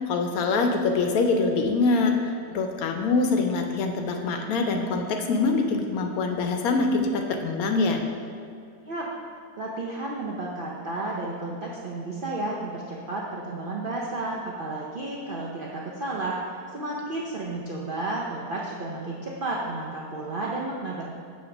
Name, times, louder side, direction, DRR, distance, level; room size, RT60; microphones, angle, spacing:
voice 1, 0.0-8.0, left 3 dB, 70° left, 4 dB, 1.0 m, -24 dB
voice 2, 9.6-16.4 16.7-21.0, right 2 dB, 85° right, -4 dB, 0.4 m, -32 dB
7.2 x 2.8 x 5.9 m, 2.4 s
omnidirectional pair, 1.7 m